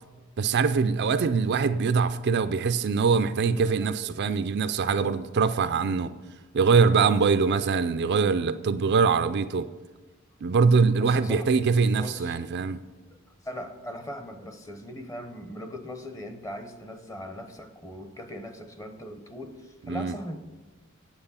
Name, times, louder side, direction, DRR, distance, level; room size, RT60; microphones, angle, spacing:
voice 1, 0.4-6.1 6.5-9.7 10.4-12.8 19.9-20.2, right 5 dB, 55° right, 11 dB, 0.4 m, -23 dB
voice 2, 3.2-5.2 6.0-6.4 8.8-9.0 9.6-9.8 10.4-10.5 11.0-12.4 13.1-20.4, left 1 dB, 15° left, 7 dB, 0.9 m, -41 dB
8.8 x 7.7 x 5.6 m, 1.3 s
head